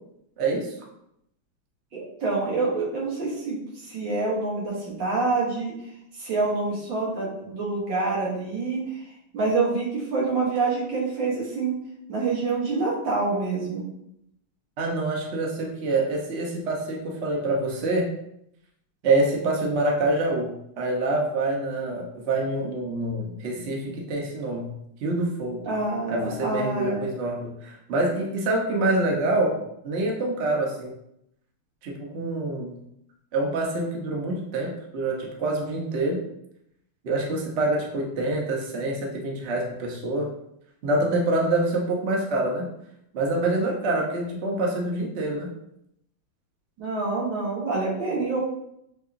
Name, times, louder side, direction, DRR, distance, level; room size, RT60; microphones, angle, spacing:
voice 1, 0.4-0.7 14.8-18.1 19.0-24.7 25.0-25.7 26.1-29.6 29.8-30.9 31.8-32.7 33.3-36.2 37.0-40.3 40.8-42.7 43.1-45.5, right 2 dB, 85° right, -1 dB, 0.6 m, -26 dB
voice 2, 1.9-5.8 6.2-9.0 9.3-11.8 12.1-13.9 25.7-27.1 46.8-48.4, right 3 dB, 65° right, -4 dB, 1.9 m, -26 dB
6.4 x 2.8 x 2.5 m, 0.78 s
omnidirectional pair, 2.4 m